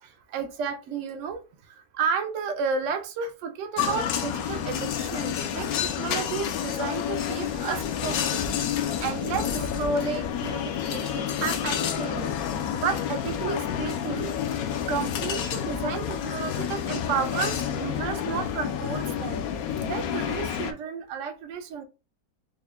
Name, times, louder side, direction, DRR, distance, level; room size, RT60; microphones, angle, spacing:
voice 1, 0.0-1.4 1.7-8.4 9.0-12.4 12.7-14.6 14.9-19.4 19.8-21.8, right 6 dB, 75° right, 0.7 m, -32 dB
sound 1, 3.8-20.7, left 9 dB, 70° left, 0.9 m, -29 dB
4.2 x 2.1 x 3.4 m
omnidirectional pair, 1.9 m